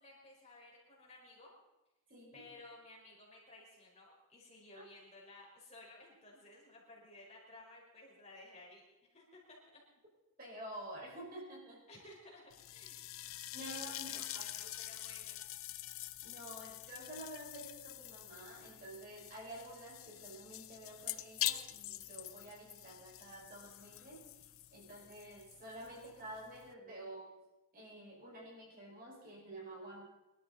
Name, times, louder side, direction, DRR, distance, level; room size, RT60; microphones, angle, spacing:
voice 1, 0.0-1.5 2.3-8.8 9.1-9.8 11.9-12.4 12.7-15.4, left 2 dB, 30° left, -3 dB, 4.7 m, -57 dB
voice 2, 2.1-2.5 4.7-4.8 10.4-11.8 13.5-14.7 16.2-24.3 24.7-27.4 27.7-30.1, right 1 dB, 40° right, -3 dB, 5.3 m, -50 dB
sound 1, 12.5-26.7, left 14 dB, 65° left, 0.7 m, -45 dB
24.0 x 13.0 x 4.1 m, 1.0 s
head